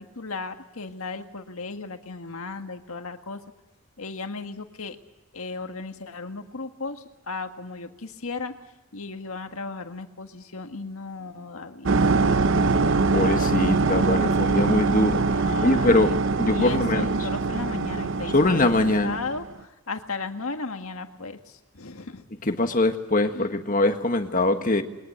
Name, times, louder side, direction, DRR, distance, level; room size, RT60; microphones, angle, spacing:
voice 1, 0.0-3.4 4.0-5.0 5.3-8.5 8.9-13.3 15.4-16.1 16.5-22.3 23.3-23.5, left 3 dB, 70° left, 6 dB, 1.8 m, -36 dB
sound 1, 11.9-19.5, right 3 dB, 55° right, 0.8 m, -23 dB
voice 2, 13.1-15.2 15.6-16.1 16.4-17.1 18.3-19.2 22.5-24.8, left 2 dB, 35° left, 6 dB, 1.6 m, -22 dB
21.5 x 20.5 x 8.0 m, 1.1 s
head